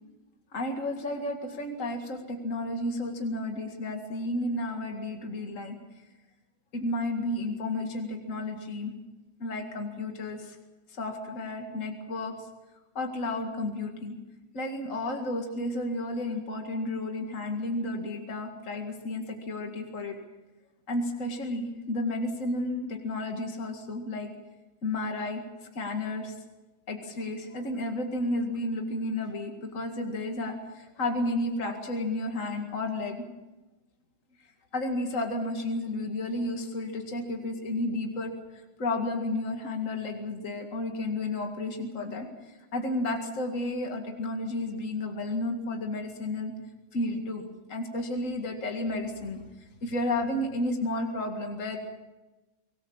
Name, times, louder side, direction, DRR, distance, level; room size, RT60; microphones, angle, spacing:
voice 1, 0.5-5.8 6.7-8.9 9.4-10.6 10.9-12.3 12.9-14.2 14.5-20.2 20.9-24.3 24.8-25.4 25.7-26.3 26.9-33.2 34.7-46.5 46.9-49.4 49.8-51.8, left 2 dB, 50° left, 3 dB, 2.5 m, -32 dB
24.5 x 19.0 x 7.3 m, 1.1 s
omnidirectional pair, 1.7 m